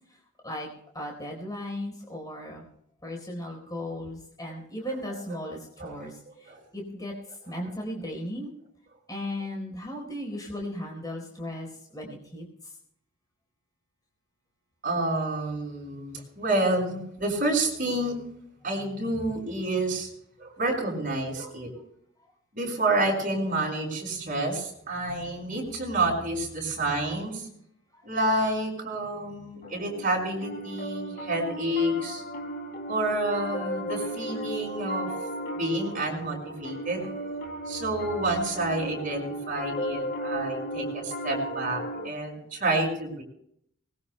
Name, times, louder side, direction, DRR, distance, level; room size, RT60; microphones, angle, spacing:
voice 1, 0.9-2.6 3.0-7.1 7.5-8.5 9.1-11.7 11.9-12.4 27.9-28.0, left 1 dB, 20° left, 0 dB, 4.1 m, -36 dB
voice 2, 4.9-5.4 5.8-6.1 6.5-6.6 7.6-7.7 14.8-18.2 18.6-20.1 20.4-21.7 22.5-27.5 28.0-32.2 32.9-35.1 35.5-37.1 37.7-43.2, right 2 dB, 40° right, 0 dB, 5.6 m, -29 dB
Piano, 29.6-42.1, equal, 45° left, 2.0 m, -35 dB
24.0 x 20.5 x 2.2 m, 0.71 s
head